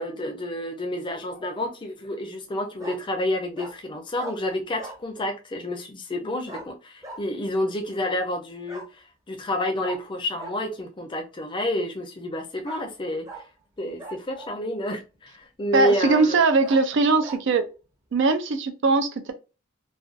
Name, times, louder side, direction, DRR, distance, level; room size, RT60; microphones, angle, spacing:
voice 1, 0.0-13.3 13.8-16.4, left 1 dB, 25° left, 0.5 m, -29 dB
Bark, 1.1-1.5 2.8-3.0 3.6-3.7 4.2-4.4 4.8-5.0 6.5-6.7 7.0-7.2 8.7-8.9 9.8-10.0 10.4-10.5 12.6-12.8 13.2-13.4 14.0-14.6 15.1-15.2 15.8-16.0 16.6-16.8 17.2-17.4, right 2 dB, 20° right, 0.6 m, -39 dB
voice 2, 15.7-17.7 18.1-19.3, right 3 dB, 65° right, 0.4 m, -20 dB
2.4 x 2.2 x 2.4 m
head